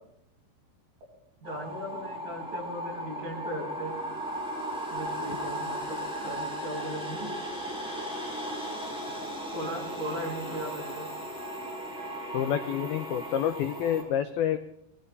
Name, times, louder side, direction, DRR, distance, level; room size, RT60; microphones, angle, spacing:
sound 1, 1.4-14.0, equal, ahead, 5.7 m, -37 dB
voice 1, 1.4-4.0 4.9-7.3 9.5-11.1, equal, 50° right, -2 dB, 7.4 m, -37 dB
sound 2, 5.0-12.6, right 3 dB, 65° right, 4.3 m, -44 dB
voice 2, 12.3-14.6, left 9 dB, 80° left, 8 dB, 2.2 m, -28 dB
26.5 x 20.0 x 2.7 m, 0.79 s
omnidirectional pair, 5.1 m